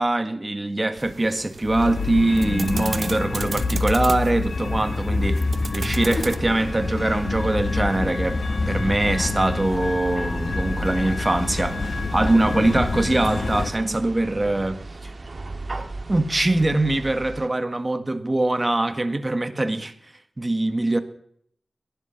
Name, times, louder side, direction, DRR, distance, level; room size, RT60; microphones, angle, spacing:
voice 1, 0.0-5.4 5.7-8.4 8.7-11.8 12.1-14.8 15.0-15.1 16.1-19.9 20.4-21.0, right 2 dB, 30° right, 1.6 m, -23 dB
sound 1, 1.0-6.4, right 4 dB, 65° right, 0.8 m, -36 dB
sound 2, 1.6-13.7, left 3 dB, 70° left, 1.6 m, -27 dB
sound 3, 6.0-17.5, right 2 dB, 50° right, 1.8 m, -36 dB
15.5 x 11.0 x 7.1 m
cardioid pair, 55°, 0 cm